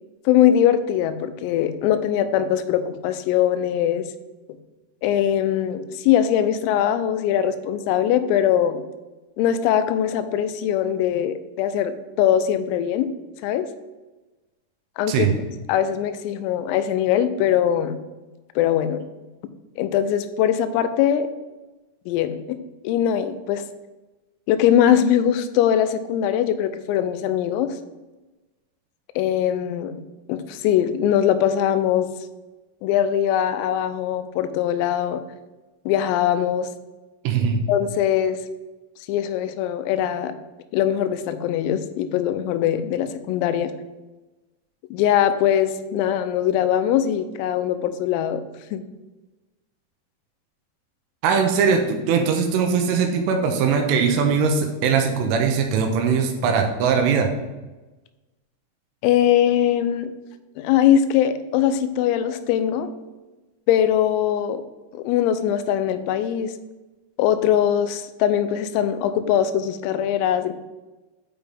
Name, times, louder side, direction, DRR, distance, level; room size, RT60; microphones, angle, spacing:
voice 1, 0.3-4.1 5.0-8.8 9.4-13.1 13.4-13.7 15.0-15.3 15.7-18.0 18.6-19.0 19.8-21.3 22.1-22.6 22.8-23.6 24.5-27.7 29.2-30.0 30.3-32.1 32.8-35.2 35.9-36.7 37.7-38.4 39.1-40.4 40.7-43.7 44.9-48.4 48.7-48.8 59.0-60.1 60.6-62.9 63.7-64.6 64.9-66.5 67.2-70.5, left 10 dB, 85° left, 10 dB, 3.2 m, -21 dB
voice 2, 37.2-37.6 51.2-57.3, right 6 dB, 80° right, 4 dB, 3.1 m, -20 dB
8.9 x 5.4 x 3.4 m, 1.1 s
omnidirectional pair, 6.0 m